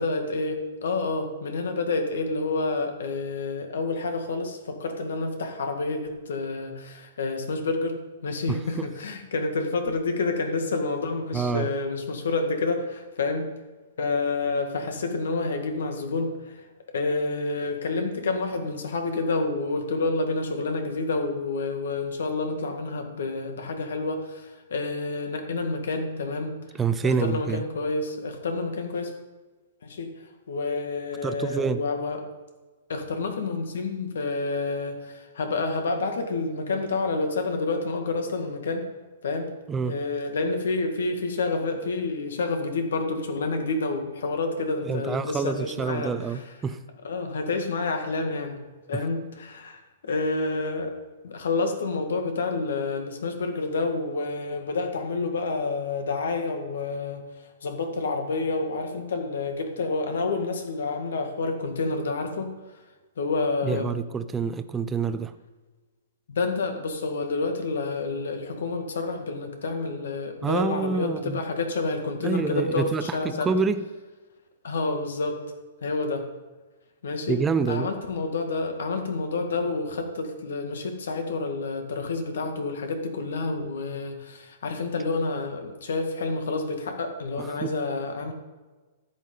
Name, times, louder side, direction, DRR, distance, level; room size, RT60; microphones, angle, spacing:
voice 1, 0.0-8.0 8.2-13.5 14.0-16.7 16.9-26.6 27.0-29.1 29.8-30.1 30.5-32.2 32.9-38.9 39.2-39.5 39.9-46.4 47.0-48.6 48.9-50.9 51.2-57.2 57.6-62.5 63.2-63.9 66.3-73.5 74.6-75.4 75.8-76.3 77.0-77.4 77.7-88.3, left 3 dB, 80° left, 5 dB, 2.0 m, -29 dB
voice 2, 11.3-11.7 26.8-27.6 31.2-31.8 39.7-40.0 44.9-46.8 48.9-49.0 63.6-65.3 70.4-71.4 72.2-73.8 77.3-77.9 87.4-87.8, right 5 dB, 10° right, 11 dB, 0.5 m, -27 dB
13.5 x 8.5 x 3.9 m, 1.2 s
hypercardioid pair, 155°, 0 cm